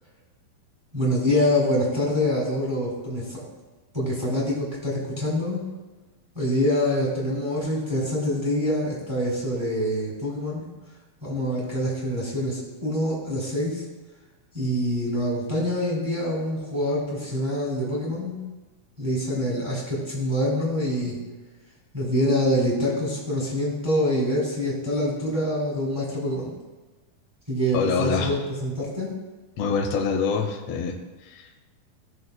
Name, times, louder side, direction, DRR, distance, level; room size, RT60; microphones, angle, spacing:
voice 1, 0.9-3.5 3.9-5.6 6.3-10.7 11.2-13.8 14.5-18.4 19.0-21.2 21.9-26.5 27.5-29.1, left 1 dB, 10° right, -5 dB, 2.3 m, -25 dB
voice 2, 27.7-28.4 29.6-30.9 31.2-31.5, left 5 dB, 75° left, 1 dB, 1.5 m, -25 dB
17.0 x 6.6 x 2.2 m, 1.3 s
omnidirectional pair, 4.4 m